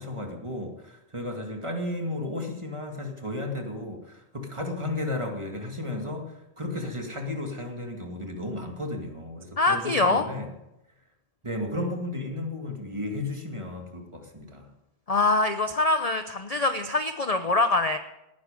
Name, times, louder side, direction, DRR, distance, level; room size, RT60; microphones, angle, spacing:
voice 1, 0.0-10.5 11.4-14.7, left 1 dB, 25° right, 2 dB, 2.1 m, -34 dB
voice 2, 9.6-10.2 15.1-18.0, left 2 dB, 35° left, 8 dB, 0.7 m, -24 dB
18.5 x 10.5 x 5.2 m, 0.91 s
omnidirectional pair, 1.3 m